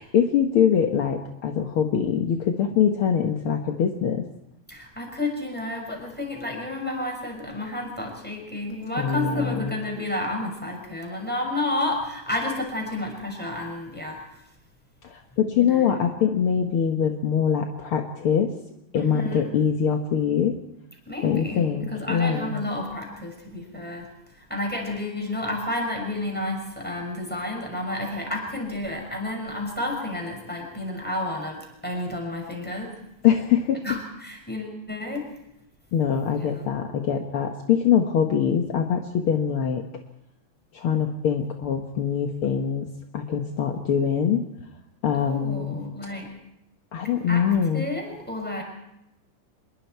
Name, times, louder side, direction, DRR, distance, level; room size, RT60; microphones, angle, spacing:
voice 1, 0.0-4.3 9.0-9.7 15.0-18.5 18.9-20.6 21.2-22.6 33.2-33.8 35.9-39.8 40.7-44.4 45.0-45.8 46.9-47.9, left 8 dB, 65° left, 3 dB, 1.4 m, -23 dB
voice 2, 4.7-14.4 15.5-16.0 18.9-19.5 21.1-24.1 24.4-33.0 33.8-35.3 36.3-36.7 45.2-46.4 47.3-47.4 47.7-48.6, left 1 dB, 5° left, 1 dB, 6.0 m, -31 dB
25.5 x 22.0 x 4.6 m, 0.84 s
omnidirectional pair, 4.0 m